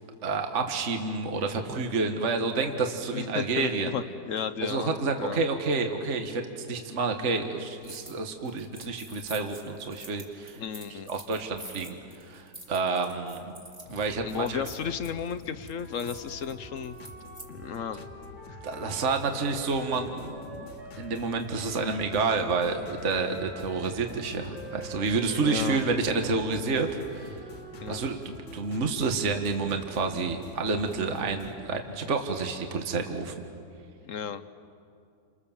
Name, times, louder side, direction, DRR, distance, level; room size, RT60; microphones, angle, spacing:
voice 1, 0.2-3.9 4.6-10.6 11.1-13.6 13.9-14.6 18.6-20.7 21.0-26.9 27.1-27.4 27.9-33.4, right 4 dB, 40° right, 5 dB, 1.7 m, -29 dB
voice 2, 3.1-5.4 10.6-11.1 14.2-17.0 17.5-18.1 18.5-18.6 25.3-25.8 27.8-28.0 34.0-34.4, left 7 dB, 55° left, 12 dB, 1.0 m, -34 dB
sound 1, 7.8-8.2 8.5-17.5, right 1 dB, 15° right, 3.2 m, -47 dB
sound 2, 13.9-31.6, left 3 dB, 75° left, 2.4 m, -47 dB
Wind instrument woodwind instrument, 15.6-22.0 22.8-28.8, right 1 dB, 85° right, 6.4 m, -47 dB
30.0 x 27.0 x 7.3 m, 2.5 s
omnidirectional pair, 2.0 m